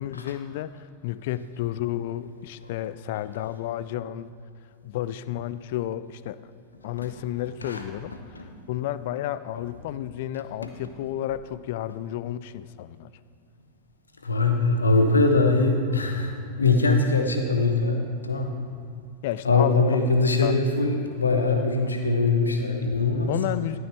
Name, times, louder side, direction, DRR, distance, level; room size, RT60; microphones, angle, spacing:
voice 1, 0.0-4.3 4.8-6.4 6.8-8.1 8.7-13.1 19.2-19.9 20.4-20.5 23.3-23.8, left 12 dB, 50° left, 15 dB, 0.3 m, -31 dB
voice 2, 14.2-18.5 19.4-23.3, left 3 dB, 75° left, 4 dB, 0.9 m, -22 dB
12.5 x 9.2 x 3.4 m, 2.4 s
figure-of-eight pair, 90°, 0 cm